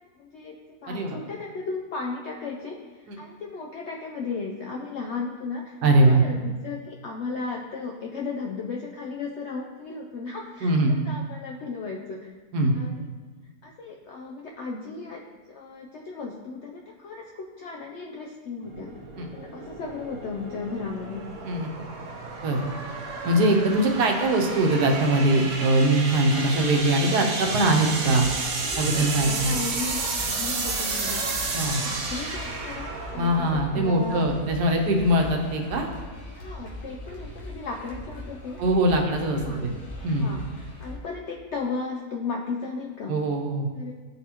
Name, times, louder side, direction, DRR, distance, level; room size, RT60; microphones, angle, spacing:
voice 1, 0.2-0.6 0.8-5.8 6.1-12.3 12.6-13.1 13.6-18.9 19.3-21.3 27.1-27.3 28.6-31.3 31.7-34.2 36.4-38.6 38.9-39.1 39.4-39.7 40.0-43.2 43.7-43.9, left 4 dB, 75° left, -1 dB, 0.6 m, -35 dB
voice 2, 0.9-1.2 3.1-3.2 5.8-6.2 10.6-10.9 12.5-12.7 19.2-19.3 21.4-21.7 22.4-22.7 23.2-28.3 28.7-29.5 31.5-31.8 33.2-35.9 38.6-39.7 40.0-40.3 43.1-43.7, right 1 dB, 85° right, 2 dB, 1.4 m, -22 dB
sound 1, 18.6-34.0, right 3 dB, 60° right, 1.1 m, -32 dB
sound 2, 27.8-41.0, left 1 dB, 40° left, 1.0 m, -41 dB
10.5 x 4.1 x 2.9 m, 1.4 s
omnidirectional pair, 1.7 m